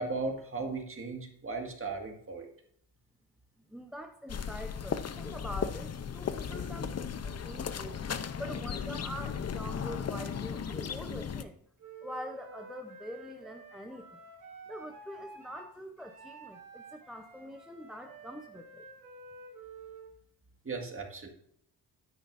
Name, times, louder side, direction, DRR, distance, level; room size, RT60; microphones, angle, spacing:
voice 1, 0.0-2.5 20.6-21.3, right 3 dB, 30° right, 2 dB, 1.9 m, -36 dB
voice 2, 3.7-8.0 8.4-11.6 12.0-14.2 14.7-18.8, equal, ahead, 4 dB, 0.7 m, -44 dB
sound 1, 4.3-11.4, left 7 dB, 40° left, 0.6 m, -36 dB
Wind instrument woodwind instrument, 11.8-20.1, right 3 dB, 50° right, 3.5 m, -50 dB
10.0 x 8.7 x 2.6 m, 0.66 s
cardioid pair, 110°, 41 cm